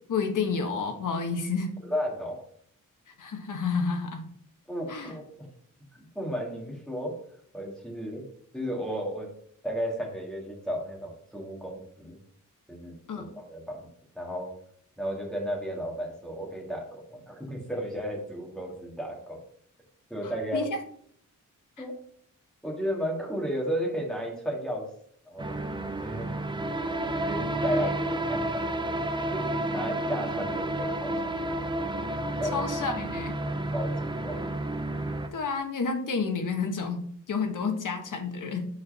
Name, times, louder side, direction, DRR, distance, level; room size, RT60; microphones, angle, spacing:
voice 1, 0.1-1.8 3.2-4.2 4.9-5.1 13.1-13.3 20.2-20.8 21.8-21.9 32.5-33.4 35.3-38.7, left 4 dB, 70° left, 5 dB, 1.3 m, -30 dB
voice 2, 1.8-2.4 4.7-5.5 6.2-7.2 7.5-8.2 8.5-9.3 9.6-12.2 12.7-13.9 14.2-14.5 15.0-19.4 20.1-20.7 21.8-21.9 22.6-24.9 25.3-25.5 25.9-26.4 27.2-29.0 29.3-31.1 32.4-32.7 33.7-34.5, equal, ahead, -1 dB, 1.9 m, -33 dB
sound 1, 25.4-35.3, right 1 dB, 15° right, 0.5 m, -31 dB
6.5 x 4.5 x 5.5 m, 0.63 s
wide cardioid pair, 180°, 33 cm